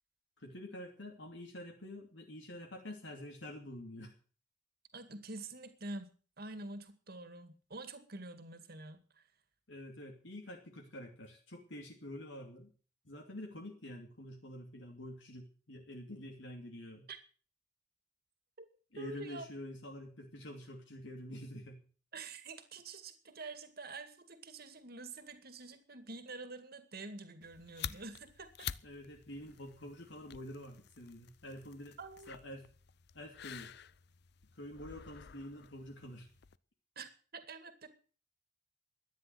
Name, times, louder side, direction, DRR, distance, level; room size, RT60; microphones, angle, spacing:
voice 1, 0.4-4.1 9.7-12.7 13.0-17.1 18.9-21.8 28.8-32.0 32.3-32.7 33.1-33.7 34.5-36.3, left 1 dB, 80° left, 2 dB, 2.8 m, -47 dB
voice 2, 4.9-9.2 17.1-17.2 18.6-18.7 19.0-19.5 22.1-28.7 32.0-32.4 37.0-37.9, right 3 dB, 55° right, 10 dB, 2.2 m, -47 dB
sound 1, 27.4-36.6, left 9 dB, 60° left, 0.6 m, -49 dB
13.5 x 10.0 x 7.9 m, 0.40 s
head